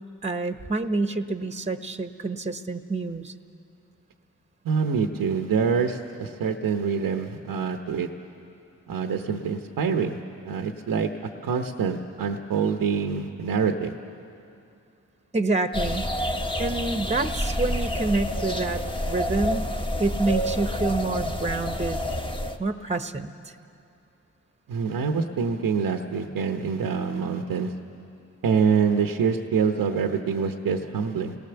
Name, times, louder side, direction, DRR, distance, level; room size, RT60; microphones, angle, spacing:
voice 1, 0.2-3.3 15.3-18.8 19.1-19.7 20.0-22.0 22.6-23.5, right 3 dB, 20° right, 8 dB, 1.1 m, -27 dB
voice 2, 4.6-8.1 8.9-10.2 10.4-11.1 11.4-13.9 24.7-27.7 28.4-31.4, right 6 dB, 85° right, 5 dB, 1.0 m, -25 dB
sound 1, 15.7-22.6, equal, 15° left, 1.4 m, -28 dB
29.5 x 18.5 x 6.9 m, 2.6 s
supercardioid pair, 45°, 34 cm